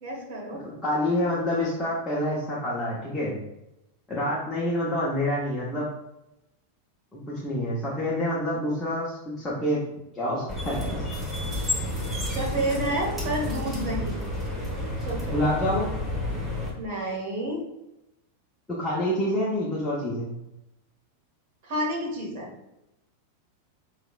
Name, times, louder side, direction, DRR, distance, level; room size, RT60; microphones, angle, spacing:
voice 1, 0.0-0.6 12.3-14.1 15.0-15.4 16.8-17.6 21.6-22.5, right 1 dB, 45° right, -1 dB, 1.6 m, -30 dB
voice 2, 0.6-3.4 4.1-5.9 7.1-9.8 10.1-11.2 15.3-15.9 18.7-20.4, left 1 dB, 10° left, -7 dB, 1.0 m, -27 dB
sound 1, 10.5-16.7, left 1 dB, 5° right, 1.4 m, -30 dB
6.1 x 3.3 x 2.5 m, 0.90 s
figure-of-eight pair, 90°, 0 cm